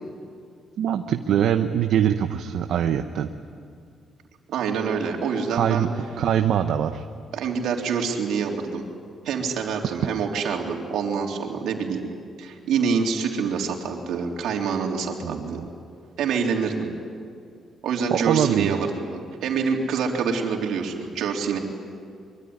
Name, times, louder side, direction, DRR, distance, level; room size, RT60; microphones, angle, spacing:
voice 1, 0.8-3.3 5.5-5.9 6.2-7.0 15.2-15.6 18.1-18.7, right 9 dB, 70° right, 6 dB, 0.9 m, -23 dB
voice 2, 4.5-5.9 7.3-8.9 9.2-12.1 12.4-15.7 16.2-16.9 17.8-21.6, right 5 dB, 90° right, 1 dB, 3.6 m, -26 dB
24.0 x 24.0 x 9.7 m, 2.3 s
cardioid pair, 155°, 0 cm